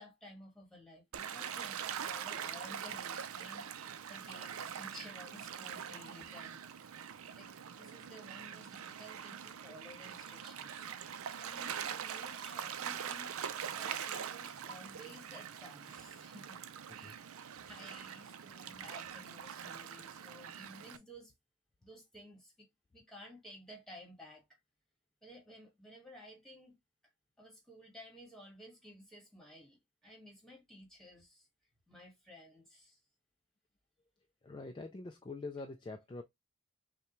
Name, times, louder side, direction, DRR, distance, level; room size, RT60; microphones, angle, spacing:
voice 1, 0.0-7.0 7.4-7.5 7.8-10.9 11.3-16.6 16.9-17.3 17.6-21.3 21.8-24.4 25.2-26.8 27.4-31.5 31.9-33.0, equal, ahead, 1.5 m, -55 dB
Gull seagull / Waves surf, 1.1-21.0, right 8 dB, 80° right, 0.5 m, -43 dB
voice 2, 34.4-36.2, left 3 dB, 20° left, 0.3 m, -44 dB
5.7 x 2.2 x 3.0 m
head